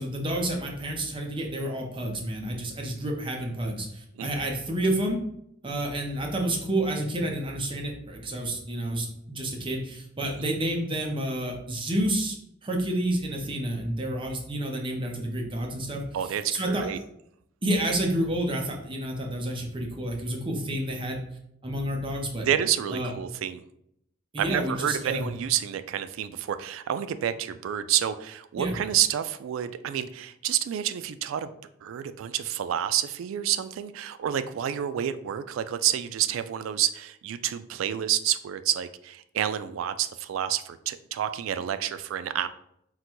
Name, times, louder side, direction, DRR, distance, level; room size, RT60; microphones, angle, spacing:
voice 1, 0.0-5.2 5.6-12.4 12.6-16.9 17.6-21.2 21.6-22.5 22.9-23.1 24.3-25.3 28.6-28.7, right 1 dB, 25° right, 1 dB, 0.7 m, -29 dB
voice 2, 16.1-17.0 22.5-23.6 24.4-31.5 31.8-42.5, right 10 dB, 75° right, 12 dB, 0.3 m, -29 dB
3.9 x 2.2 x 4.5 m, 0.75 s
head